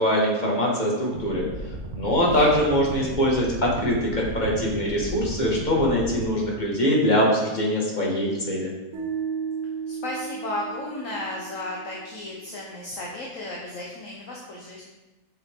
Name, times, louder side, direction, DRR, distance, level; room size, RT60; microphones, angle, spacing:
voice 1, 0.0-1.4 1.9-8.7, equal, 30° left, -3 dB, 1.9 m, -23 dB
sound 1, 1.1-6.2, right 1 dB, 25° right, 1.4 m, -35 dB
sound 2, 8.9-12.1, right 6 dB, 65° right, 2.0 m, -34 dB
voice 2, 9.9-14.8, left 2 dB, 60° left, -3 dB, 1.4 m, -34 dB
6.9 x 6.7 x 3.7 m, 1.1 s
omnidirectional pair, 1.6 m